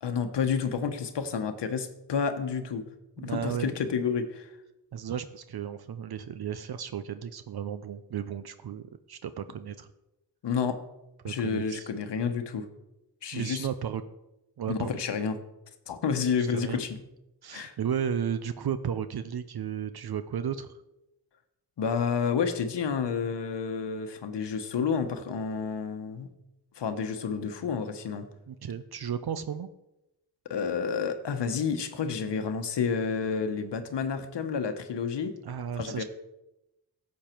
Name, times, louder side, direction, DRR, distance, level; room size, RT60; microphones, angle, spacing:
voice 1, 0.0-2.8 3.2-4.5 10.4-10.8 11.3-12.7 13.2-13.7 14.7-15.4 15.9-17.0 17.5-17.7 21.8-26.3 26.8-28.3 30.5-35.3 35.8-36.0, left 6 dB, 85° left, 8 dB, 1.0 m, -30 dB
voice 2, 3.2-3.7 4.9-8.8 9.1-9.9 11.2-11.9 13.3-14.0 14.6-15.0 16.4-16.8 17.4-20.7 28.5-29.7 35.4-36.0, right 8 dB, 65° right, 12 dB, 0.6 m, -34 dB
12.0 x 7.4 x 4.5 m, 0.92 s
wide cardioid pair, 85°, 41 cm